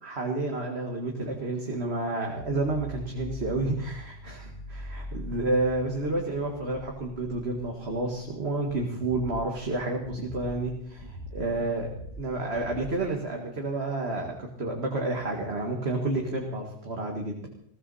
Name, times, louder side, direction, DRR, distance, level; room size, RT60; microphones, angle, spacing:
voice 1, 0.0-11.9 12.2-17.5, right 2 dB, 60° right, 1 dB, 2.2 m, -30 dB
sound 1, 2.4-13.1, equal, 75° left, 3.2 m, -43 dB
20.5 x 16.0 x 4.2 m, 0.69 s
omnidirectional pair, 1.3 m